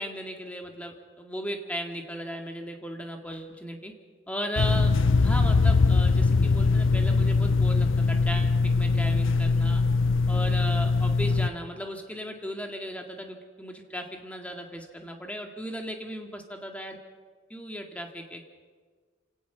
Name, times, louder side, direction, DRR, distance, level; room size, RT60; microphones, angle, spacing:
voice 1, 0.0-3.9 4.3-4.9 5.2-9.8 10.3-17.0 17.5-18.6, equal, 5° left, 3 dB, 2.0 m, -36 dB
sound 1, 4.6-11.5, left 4 dB, 75° left, 0.6 m, -22 dB
27.0 x 18.0 x 5.8 m, 1.5 s
head